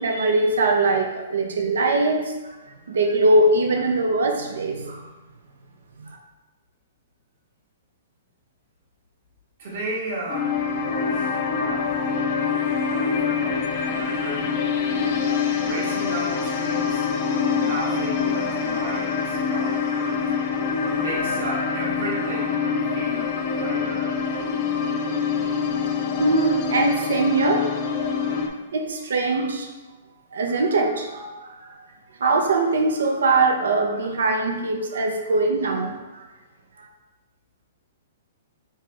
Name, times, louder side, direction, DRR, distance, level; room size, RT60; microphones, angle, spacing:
voice 1, 0.0-2.5 2.9-5.0 6.1-6.2 26.2-27.7 28.2-28.3 28.7-29.7 30.3-31.7 32.2-36.2, right 2 dB, 90° right, 3 dB, 0.8 m, -22 dB
voice 2, 9.6-12.1 12.8-14.6 15.6-17.1 17.4-20.2 20.8-24.1, right 1 dB, 60° right, -3 dB, 1.5 m, -34 dB
sound 1, 10.3-28.5, left 6 dB, 40° left, 0.5 m, -25 dB
4.3 x 3.1 x 3.6 m, 1.1 s
hypercardioid pair, 160°, 0 cm